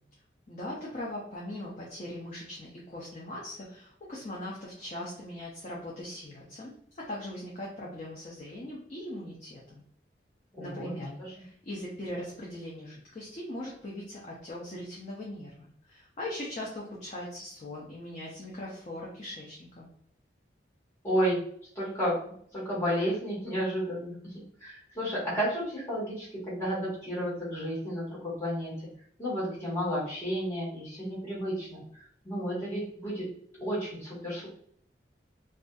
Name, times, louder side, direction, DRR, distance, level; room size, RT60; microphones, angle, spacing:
voice 1, 0.5-9.8 10.6-19.9, left 1 dB, 40° left, -4 dB, 0.5 m, -40 dB
voice 2, 10.5-11.3 21.0-21.4 21.7-22.2 22.5-24.1 24.6-28.7 29.2-31.8 32.2-33.3 33.6-34.5, equal, 15° left, -9 dB, 1.2 m, -32 dB
2.5 x 2.4 x 2.3 m, 0.62 s
head